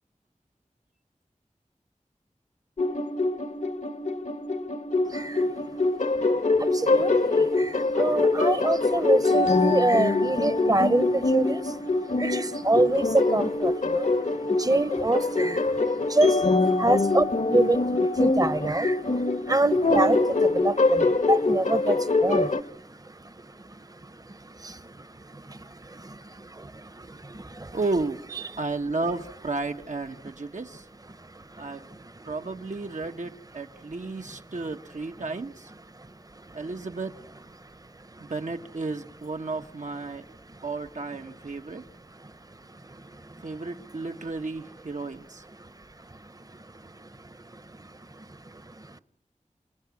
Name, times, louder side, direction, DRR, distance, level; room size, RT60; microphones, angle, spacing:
sound 1, 2.8-22.6, left 3 dB, 70° left, 1.3 m, -24 dB
voice 1, 6.8-7.7 8.0-11.6 12.2-13.1 13.3-14.1 14.6-15.6 16.1-16.3 16.8-17.8 18.2-19.0 19.5-20.2 20.6-22.0 22.2-22.5, right 2 dB, 30° right, 0.9 m, -25 dB
voice 2, 27.7-28.2 28.6-30.8 31.6-31.9 32.3-35.7 36.5-37.2 38.2-40.2 40.6-41.8 43.4-45.4, right 3 dB, 75° right, 1.2 m, -33 dB
28.0 x 20.0 x 9.5 m
wide cardioid pair, 60°, 13 cm